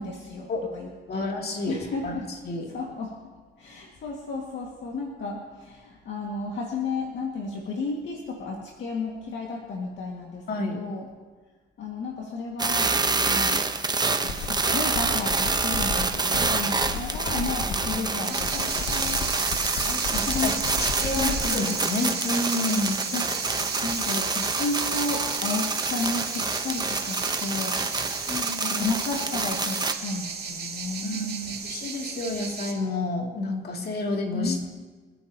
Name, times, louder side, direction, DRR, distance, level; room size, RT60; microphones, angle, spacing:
voice 1, 0.0-1.3 1.7-2.3 2.7-3.1 3.6-11.1 11.8-13.0 13.2-13.6 14.2-19.6 20.1-20.6 21.0-21.6 23.1-28.2 28.7-31.7 34.3-34.6, left 3 dB, 70° left, -1 dB, 2.1 m, -33 dB
voice 2, 1.1-1.7 2.0-2.2 2.4-2.7 10.5-10.8 18.9-19.2 19.7-20.0 20.4-20.5 20.8-23.0 28.3-28.9 31.0-31.3 31.6-34.7, left 2 dB, 50° left, 0 dB, 2.7 m, -30 dB
sound 1, 12.6-29.9, right 3 dB, 20° right, 1.0 m, -27 dB
sound 2, 14.1-14.5 14.8-18.1 18.4-21.4, left 4 dB, 85° left, 1.9 m, -34 dB
sound 3, 18.2-32.7, right 5 dB, 55° right, 2.5 m, -34 dB
26.5 x 10.0 x 3.0 m, 1.4 s
cardioid pair, 90°, 20 cm